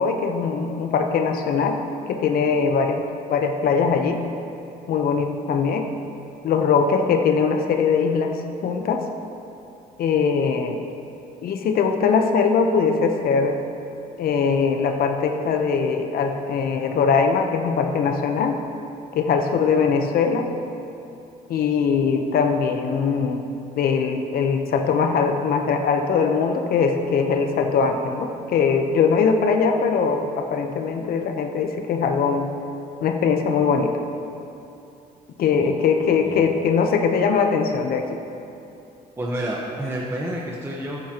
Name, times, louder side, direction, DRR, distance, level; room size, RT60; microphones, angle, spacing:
voice 1, 0.0-1.8 2.1-3.0 3.3-4.2 4.9-5.9 6.4-9.0 10.0-10.8 11.4-13.6 14.2-18.6 19.1-20.5 21.5-23.5 23.8-32.5 33.0-33.9 35.4-38.2, left 5 dB, 60° left, 5 dB, 0.9 m, -21 dB
voice 2, 39.2-41.0, right 1 dB, 15° right, -3 dB, 1.1 m, -29 dB
14.0 x 10.5 x 2.9 m, 2.8 s
cardioid pair, 110°, 17 cm